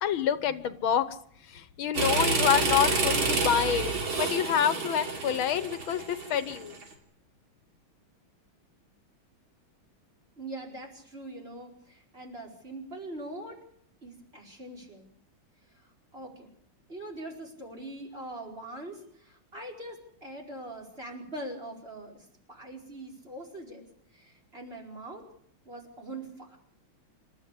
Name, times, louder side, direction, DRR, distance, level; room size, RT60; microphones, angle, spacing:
voice 1, 0.0-1.2 1.4-6.8, left 9 dB, 85° left, 12 dB, 1.9 m, -27 dB
sound 1, 1.9-6.8, right 3 dB, 75° right, 3.6 m, -28 dB
voice 2, 10.4-13.6 14.0-15.1 15.7-16.5 16.9-23.9 24.1-25.2 25.6-26.6, right 1 dB, 30° right, 0 dB, 5.0 m, -42 dB
27.0 x 13.5 x 8.4 m, 0.66 s
omnidirectional pair, 2.2 m